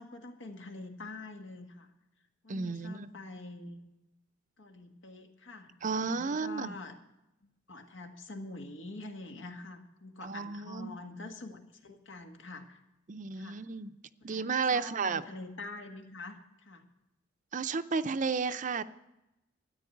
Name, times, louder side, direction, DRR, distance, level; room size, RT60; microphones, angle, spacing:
voice 1, 0.0-1.9 2.4-3.8 4.6-6.9 7.7-12.8 13.4-13.6 14.2-16.9, left 2 dB, 80° left, 4 dB, 1.7 m, -45 dB
voice 2, 2.5-3.1 5.8-6.8 10.2-10.9 13.1-13.9 14.2-15.2 17.5-18.8, right 5 dB, 40° right, 12 dB, 0.5 m, -32 dB
13.0 x 10.0 x 7.8 m, 0.90 s
head